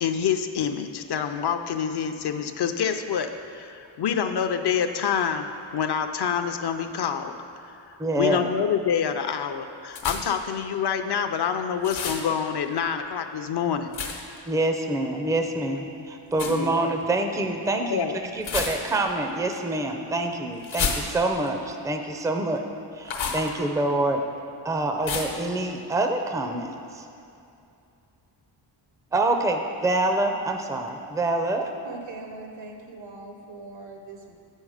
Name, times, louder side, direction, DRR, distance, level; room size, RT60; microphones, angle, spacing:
voice 1, 0.0-7.3 7.6-7.7 8.2-13.9 16.4-16.7 17.8-18.2, left 7 dB, 60° left, 7 dB, 0.6 m, -27 dB
voice 2, 8.0-8.5 14.5-18.1 18.3-22.6 23.0-24.2 24.6-27.1 29.1-31.7, right 2 dB, 5° right, 4 dB, 0.4 m, -26 dB
Throwing small objects into a plastic bag, 9.9-10.5 11.8-12.3 13.9-14.4 16.3-16.6 18.4-19.1 20.6-21.5 23.0-23.5 25.0-25.5, left 5 dB, 80° left, 1.1 m, -30 dB
voice 3, 31.8-34.5, right 3 dB, 75° right, 3 dB, 1.1 m, -41 dB
8.2 x 6.4 x 4.8 m, 2.6 s
wide cardioid pair, 115°, 46 cm